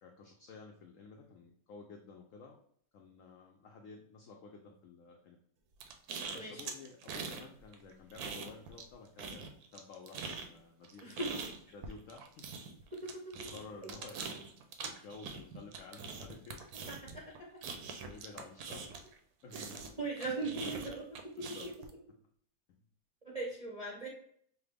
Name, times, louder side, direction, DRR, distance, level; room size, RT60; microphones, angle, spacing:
voice 1, 0.0-2.6 2.9-5.4 6.3-9.5 9.7-11.1 11.7-12.5 13.5-14.3 14.8-16.6 18.0-18.9 19.4-19.9 21.4-21.7, left 4 dB, 90° left, 2 dB, 0.7 m, -52 dB
sound 1, 5.8-7.4 7.7-8.9 9.2-19.2 19.5-21.9, right 5 dB, 70° right, 1.0 m, -43 dB
voice 2, 6.3-6.6 11.0-11.3 19.5-19.7 20.0-21.0 23.3-24.1, right 2 dB, 45° right, -5 dB, 0.4 m, -38 dB
5.7 x 2.1 x 3.3 m, 0.62 s
omnidirectional pair, 1.9 m